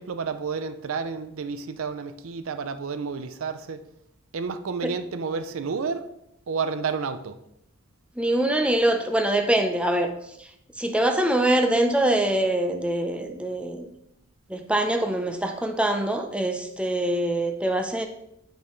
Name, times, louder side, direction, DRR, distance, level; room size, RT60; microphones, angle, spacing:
voice 1, 0.0-3.8 4.3-6.1 6.5-7.4, right 5 dB, 85° right, 0.5 m, -30 dB
voice 2, 8.2-10.1 10.4-10.5 10.8-13.9 14.5-18.1, right 1 dB, 5° right, 0.5 m, -24 dB
8.8 x 5.4 x 3.1 m
head